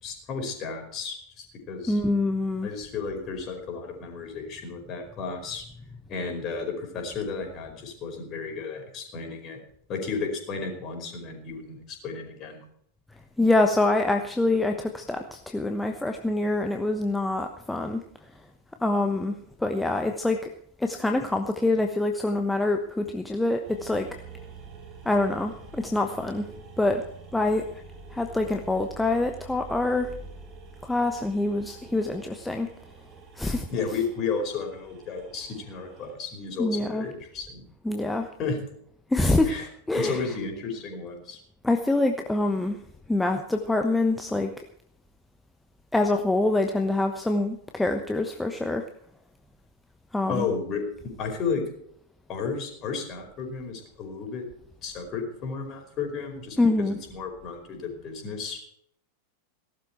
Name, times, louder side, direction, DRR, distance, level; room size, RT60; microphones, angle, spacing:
voice 1, 0.0-2.0 2.6-5.6 6.1-9.6 9.9-12.6 33.7-37.6 38.4-38.6 39.4-39.7 39.9-41.4 50.3-51.6 52.3-54.5 54.8-58.6, left 5 dB, 35° left, 3 dB, 4.9 m, -33 dB
voice 2, 1.9-2.7 13.4-18.0 18.8-20.4 20.8-24.1 25.0-26.5 26.8-27.0 27.3-27.6 28.1-30.1 30.8-32.7 33.4-33.7 36.6-37.0 37.8-38.3 39.1-39.5 39.9-40.2 41.6-42.8 43.1-44.5 45.9-48.8 50.1-50.5 56.6-57.0, left 2 dB, 5° left, 5 dB, 1.1 m, -25 dB
sound 1, 23.6-36.1, right 4 dB, 35° right, 3.7 m, -46 dB
18.0 x 12.5 x 4.5 m, 0.69 s
figure-of-eight pair, 90°, 0 cm